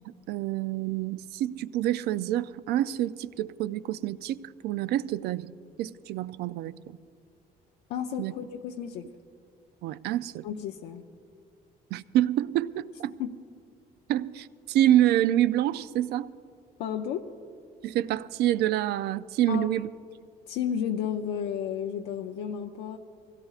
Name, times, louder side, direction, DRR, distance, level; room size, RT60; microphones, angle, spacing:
voice 1, 0.0-7.0 8.2-8.3 9.8-10.5 11.9-13.2 14.1-16.3 17.8-19.9, right 13 dB, 75° right, 15 dB, 0.4 m, -27 dB
voice 2, 7.9-9.1 10.4-11.0 13.2-13.3 16.8-17.3 19.5-19.8 20.5-23.0, left 8 dB, 85° left, 3 dB, 0.6 m, -32 dB
22.5 x 17.0 x 2.4 m, 2.3 s
cardioid pair, 110°, 17 cm